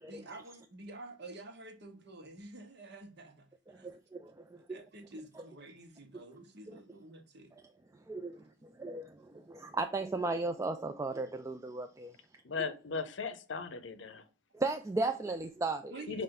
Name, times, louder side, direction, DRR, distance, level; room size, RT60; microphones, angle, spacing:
voice 1, 0.0-4.0 4.7-7.5 8.3-8.4 15.9-16.2, right 2 dB, 60° right, 1.0 m, -49 dB
voice 2, 3.7-4.8 8.1-12.1 14.5-15.9, right 3 dB, 15° right, 0.3 m, -36 dB
voice 3, 12.4-14.2 16.1-16.2, left 4 dB, 70° left, 0.6 m, -37 dB
5.4 x 2.5 x 3.8 m
head